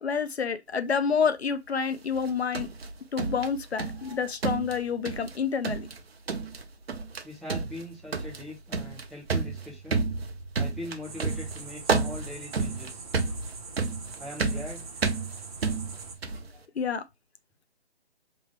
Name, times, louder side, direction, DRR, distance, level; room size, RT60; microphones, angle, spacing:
voice 1, 0.0-2.7 3.1-5.9 16.8-17.0, left 6 dB, 70° left, 0.8 m, -28 dB
sound 1, 2.2-4.1 4.4-5.4 5.6-6.0 6.3-6.6 6.9-7.2 7.5-16.5, right 4 dB, 65° right, 0.9 m, -30 dB
voice 2, 7.2-10.0 10.6-13.0 14.2-15.0, left 1 dB, ahead, 0.4 m, -41 dB
sound 2, 11.0-16.2, right 4 dB, 35° right, 0.8 m, -43 dB
4.3 x 3.2 x 3.2 m
figure-of-eight pair, 155°, 33 cm